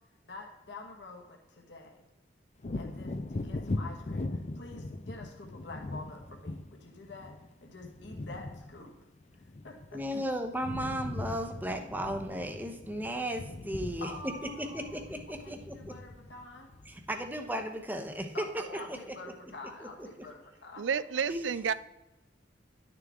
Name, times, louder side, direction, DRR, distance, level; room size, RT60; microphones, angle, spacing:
voice 1, 0.3-2.0 2.7-7.3 7.6-8.9 9.6-10.0 14.0-15.0 15.4-16.7 18.3-21.2, left 2 dB, 70° left, 0 dB, 1.5 m, -47 dB
Wind / Thunder, 2.6-10.2 10.4-17.7 18.1-18.3, left 2 dB, 40° left, 0.5 m, -40 dB
voice 2, 9.9-14.3 14.6-15.8 16.9-19.2 20.0-20.3 21.3-21.5, equal, 10° right, 5 dB, 0.9 m, -35 dB
voice 3, 20.8-21.7, right 7 dB, 80° right, 17 dB, 0.4 m, -30 dB
11.0 x 6.8 x 3.6 m, 1.1 s
head